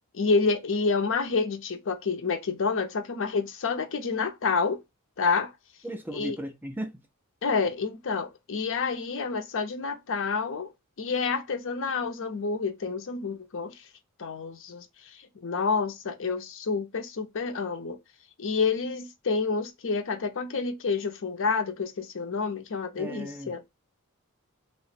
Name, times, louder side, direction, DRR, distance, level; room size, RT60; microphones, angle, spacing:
voice 1, 0.1-4.8 5.2-5.5 6.1-6.4 7.4-10.7 11.0-13.7 14.2-14.8 15.4-18.0 18.4-23.6, left 4 dB, 60° left, 0.6 m, -28 dB
voice 2, 5.8-6.9 23.0-23.5, right 1 dB, 10° right, 0.4 m, -36 dB
2.8 x 2.1 x 4.0 m
head